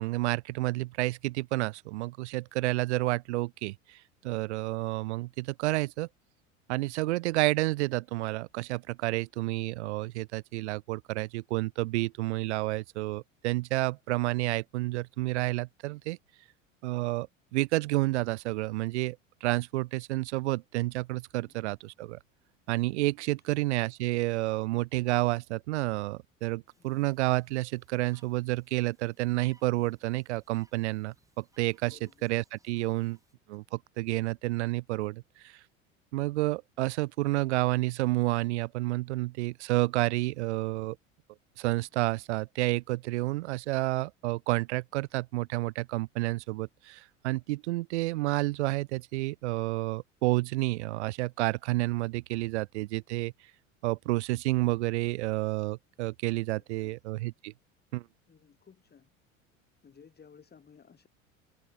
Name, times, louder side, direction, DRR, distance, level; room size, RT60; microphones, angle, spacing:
voice 1, 0.0-6.1 6.7-16.2 16.8-17.3 17.5-22.2 22.7-33.2 33.5-35.6 36.1-41.0 41.6-53.3 53.8-57.5 57.9-58.0, right 20 dB, 60° right, 0.5 m, -30 dB
voice 2, 6.8-7.2 21.4-21.7 23.2-23.3 26.8-27.0 31.9-32.3 56.7-57.0 58.3-59.1 59.8-61.1, left 6 dB, 25° left, 6.1 m, -57 dB
sound 1, 26.7-33.3, right 2 dB, 10° right, 5.8 m, -68 dB
figure-of-eight pair, 75°, 39 cm